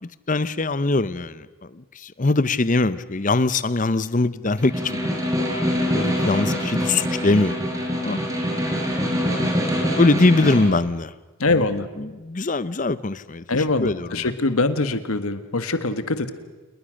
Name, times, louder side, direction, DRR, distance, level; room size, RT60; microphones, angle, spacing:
voice 1, 0.0-8.2 9.9-11.1 11.5-11.7 12.0-14.3, left 2 dB, 35° left, 17 dB, 0.7 m, -23 dB
Snare drum, 4.6-10.7, equal, 15° right, 4.6 m, -24 dB
voice 2, 11.4-11.9 13.5-16.4, left 3 dB, 80° left, 11 dB, 1.6 m, -23 dB
28.5 x 20.5 x 6.5 m, 1.2 s
head